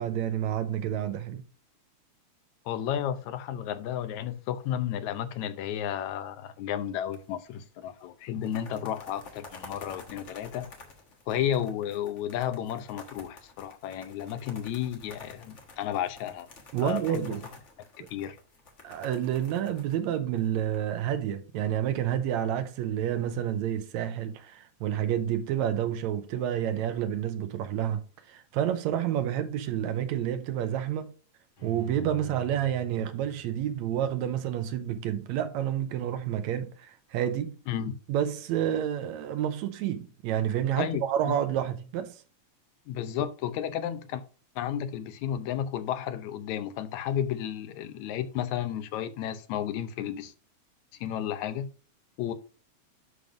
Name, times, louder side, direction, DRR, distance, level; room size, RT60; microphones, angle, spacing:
voice 1, 0.0-1.4 16.7-17.4 18.8-31.1 31.6-37.6 38.1-42.2, right 10 dB, 80° right, 2.0 m, -29 dB
voice 2, 2.7-10.7 11.3-16.5 16.8-17.3 18.1-18.4 37.7-37.9 40.7-41.4 42.9-44.2 44.6-50.3 51.0-51.7 52.2-52.3, left 10 dB, 80° left, 2.1 m, -32 dB
sound 1, 7.1-7.6 7.8-7.9 8.3-20.8, left 3 dB, 40° left, 1.1 m, -50 dB
Bowed string instrument, 31.6-34.7 35.1-35.2, right 3 dB, 55° left, 5.6 m, -48 dB
11.5 x 5.3 x 2.5 m
omnidirectional pair, 3.3 m